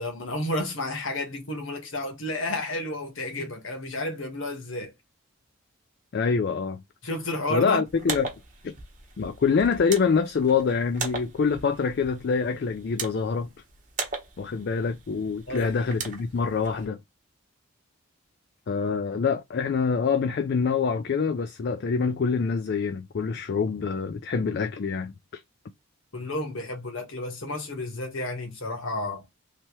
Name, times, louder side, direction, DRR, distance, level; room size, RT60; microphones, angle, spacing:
voice 1, 0.0-4.9 7.0-7.8 15.5-15.7 26.1-29.2, left 1 dB, 65° left, 1.3 m, -31 dB
voice 2, 6.1-6.8 7.5-8.3 8.6-8.7 9.2-13.5 14.4-17.0 18.7-25.4, left 5 dB, 50° left, 0.3 m, -25 dB
sound 1, 7.9-16.8, right 4 dB, 35° right, 0.9 m, -39 dB
3.3 x 2.8 x 2.9 m
head